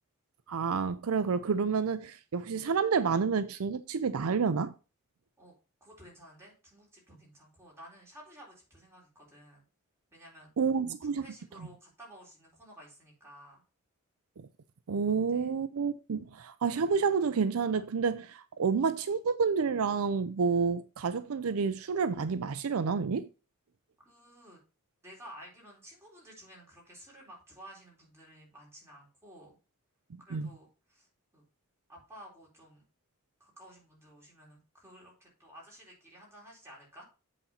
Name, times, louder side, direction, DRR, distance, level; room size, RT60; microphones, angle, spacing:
voice 1, 0.5-4.7 10.6-11.2 14.4-14.5 14.9-23.3 30.3-30.5, right 5 dB, 70° right, 0.5 m, -29 dB
voice 2, 5.8-9.6 10.1-10.5 11.2-13.6 15.3-15.5 24.0-24.6 25.0-29.6 30.2-31.1 31.3-31.4 31.9-32.8 33.4-37.0, equal, 10° right, 4.0 m, -53 dB
8.2 x 4.2 x 5.6 m
head